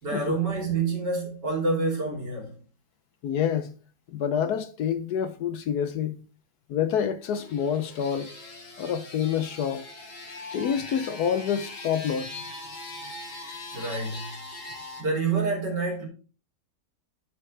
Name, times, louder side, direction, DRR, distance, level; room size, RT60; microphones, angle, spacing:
voice 1, 0.0-2.6 13.7-14.3 15.0-16.1, right 4 dB, 70° right, 3.6 m, -27 dB
voice 2, 3.2-3.7 4.1-6.2 6.7-8.3 8.8-9.9 10.5-12.5, left 8 dB, 70° left, 1.1 m, -27 dB
sound 1, 7.2-15.0, left 2 dB, 45° left, 2.1 m, -41 dB
9.3 x 5.9 x 3.2 m
omnidirectional pair, 1.9 m